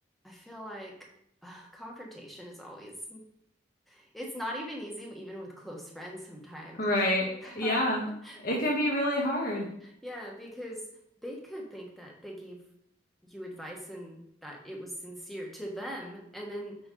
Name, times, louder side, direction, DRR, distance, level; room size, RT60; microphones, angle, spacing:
voice 1, 0.2-0.9 1.4-3.2 3.9-6.8 7.4-7.7 8.2-8.6 9.8-10.9 11.2-12.6 13.2-16.8, equal, ahead, -1 dB, 1.4 m, -41 dB
voice 2, 6.7-8.1 8.4-9.7, left 1 dB, 50° left, -3 dB, 1.4 m, -27 dB
7.9 x 5.3 x 3.9 m, 0.73 s
head